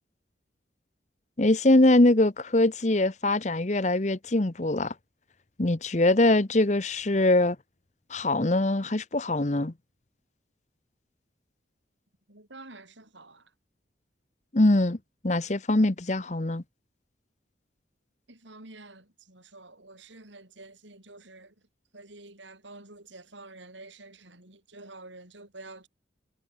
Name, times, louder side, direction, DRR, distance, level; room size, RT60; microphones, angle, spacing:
voice 1, 1.4-4.9 5.6-7.6 8.1-9.7 14.5-15.0 15.2-16.6, left 2 dB, 40° left, 1.0 m, -23 dB
voice 2, 12.3-13.5 18.3-21.5 21.9-25.9, right 2 dB, 80° right, 7.1 m, -48 dB
head